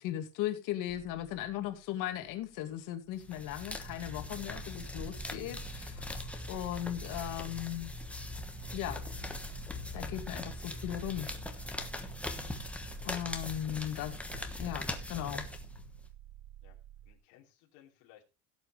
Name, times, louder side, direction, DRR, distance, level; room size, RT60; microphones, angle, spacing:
voice 1, 0.0-7.9 8.7-9.0 9.9-11.3 13.0-14.1 14.6-15.4, left 12 dB, 60° left, 7 dB, 2.2 m, -37 dB
sound 1, 0.9-17.2, right 13 dB, 60° right, 0.8 m, -53 dB
sound 2, 3.2-16.1, left 2 dB, 5° left, 1.2 m, -41 dB
voice 2, 13.6-14.0 16.6-16.8 17.0-18.2, left 13 dB, 90° left, -1 dB, 3.0 m, -60 dB
17.0 x 7.9 x 3.2 m, 0.27 s
cardioid pair, 165°, 36 cm